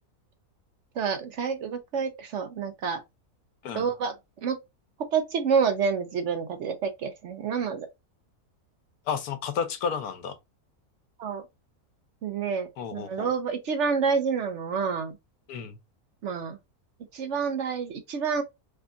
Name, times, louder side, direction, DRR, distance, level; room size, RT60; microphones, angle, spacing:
voice 1, 1.0-3.0 3.7-4.1 4.4-4.6 5.1-7.9 11.2-11.4 12.2-15.1 16.2-16.6 17.1-18.4, right 6 dB, 65° right, 0.8 m, -28 dB
voice 2, 9.1-10.4 12.8-13.3 15.5-15.8, left 7 dB, 85° left, 1.3 m, -32 dB
3.4 x 2.3 x 3.7 m
omnidirectional pair, 1.6 m